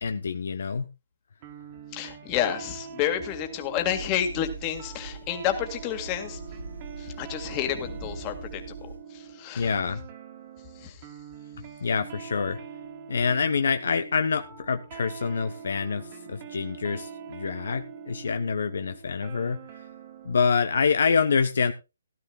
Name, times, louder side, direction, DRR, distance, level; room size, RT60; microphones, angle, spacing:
voice 1, 0.0-0.9 9.5-10.0 11.8-12.6 13.1-19.6 20.2-21.7, left 5 dB, 65° left, 9 dB, 0.9 m, -26 dB
sound 1, 1.4-20.5, right 7 dB, 35° right, 2.1 m, -44 dB
voice 2, 1.9-6.4 7.0-8.9 9.1-9.7 10.8-11.0, left 10 dB, 25° left, 6 dB, 2.1 m, -30 dB
sound 2, 3.7-9.0, right 4 dB, 85° right, 5.7 m, -42 dB
17.0 x 12.0 x 2.4 m, 0.27 s
hypercardioid pair, 150°, 0 cm